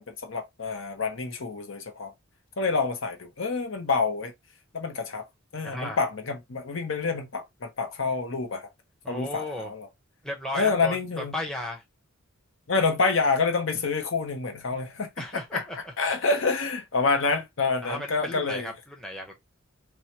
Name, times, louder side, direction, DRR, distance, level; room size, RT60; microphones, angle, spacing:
voice 1, 0.0-2.1 2.6-4.3 4.7-5.3 5.5-8.7 9.1-9.9 10.5-11.3 12.7-18.7, left 4 dB, 65° left, 0.7 m, -27 dB
voice 2, 5.6-6.0 9.0-9.7 10.2-11.8 15.2-15.9 17.8-19.3, left 1 dB, 5° left, 0.8 m, -35 dB
4.5 x 2.1 x 2.9 m
head